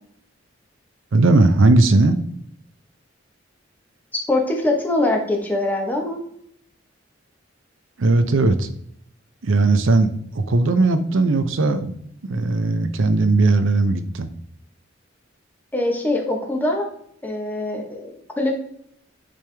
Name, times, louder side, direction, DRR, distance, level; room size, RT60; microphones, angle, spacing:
voice 1, 1.1-2.2 8.0-8.7 9.4-11.9 12.3-14.3, right 2 dB, 90° right, 10 dB, 0.6 m, -18 dB
voice 2, 4.1-6.2 15.7-16.9 17.2-18.5, left 2 dB, 10° left, 1 dB, 1.0 m, -23 dB
8.7 x 3.4 x 3.4 m, 0.69 s
head